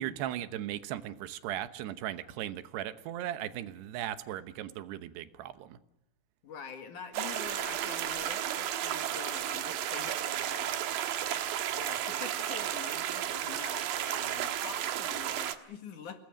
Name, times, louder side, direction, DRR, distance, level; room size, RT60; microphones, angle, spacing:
voice 1, 0.0-5.8, right 12 dB, 90° right, 12 dB, 3.2 m, -37 dB
voice 2, 6.4-11.4 11.7-16.2, left 6 dB, 55° left, 6 dB, 3.1 m, -46 dB
sound 1, 7.1-15.6, right 11 dB, 70° right, 2.8 m, -33 dB
28.5 x 19.5 x 6.4 m, 0.87 s
omnidirectional pair, 4.6 m